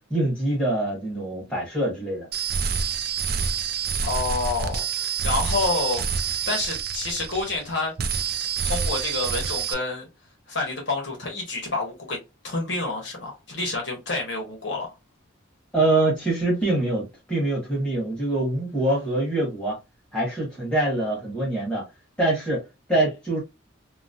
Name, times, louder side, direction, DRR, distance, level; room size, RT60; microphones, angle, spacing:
voice 1, 0.1-2.3 15.7-19.8 20.1-21.8 22.2-22.6 22.9-23.4, right 2 dB, 5° left, 1.3 m, -24 dB
sound 1, 2.3-7.7 8.0-9.7, right 6 dB, 50° right, 0.3 m, -27 dB
voice 2, 4.0-6.0 6.5-7.9 8.6-10.1 10.5-12.2 12.4-14.9, left 3 dB, 65° left, 1.1 m, -28 dB
2.9 x 2.0 x 2.5 m
head